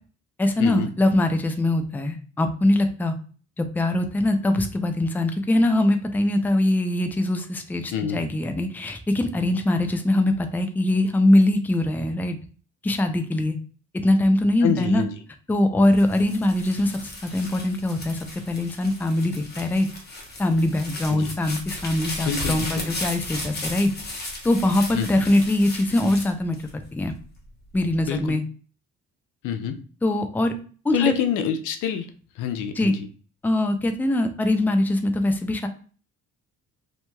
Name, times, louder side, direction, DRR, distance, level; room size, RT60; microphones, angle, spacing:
voice 1, 0.4-3.1 3.6-12.4 12.8-13.6 14.0-15.0 15.5-18.2 18.5-19.9 20.4-23.9 24.4-27.1 27.7-28.4 30.0-30.5 30.8-31.1 32.8-32.9 33.4-35.7, left 1 dB, 5° left, 6 dB, 0.4 m, -22 dB
voice 2, 7.9-8.2 14.6-15.1 21.1-21.3 22.2-22.9 24.9-25.2 28.0-28.4 29.4-29.8 30.9-32.1 32.4-33.1, left 8 dB, 85° left, 7 dB, 0.5 m, -27 dB
sound 1, 15.8-27.2 27.7-28.3, left 2 dB, 35° left, 1.0 m, -35 dB
3.0 x 2.6 x 2.2 m, 0.39 s
cardioid pair, 90°, 30 cm